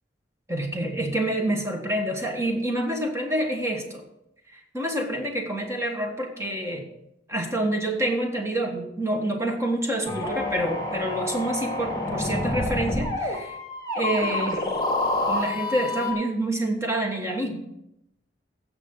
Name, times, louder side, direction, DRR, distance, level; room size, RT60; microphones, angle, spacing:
voice 1, 0.5-4.0 4.5-6.9 7.3-13.6 13.9-14.6 15.3-17.6, right 1 dB, 15° right, 2 dB, 1.6 m, -27 dB
elektronische reel, 10.1-16.1, left 2 dB, 20° left, 1.6 m, -28 dB
15.5 x 6.8 x 3.9 m, 0.82 s
head